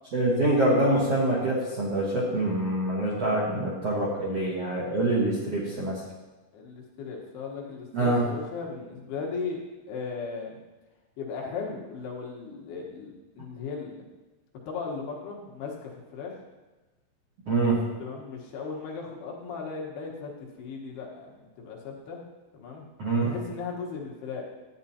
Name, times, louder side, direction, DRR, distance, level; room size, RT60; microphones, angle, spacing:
voice 1, 0.1-6.0 7.9-8.2 17.5-17.8 23.0-23.3, right 2 dB, 65° right, -6 dB, 1.5 m, -25 dB
voice 2, 6.5-9.6 9.9-10.6 11.2-14.0 14.7-16.4 18.0-22.2 22.5-22.8 23.2-24.4, left 5 dB, 75° left, -1 dB, 3.1 m, -37 dB
12.5 x 9.0 x 2.8 m, 1.1 s
omnidirectional pair, 4.8 m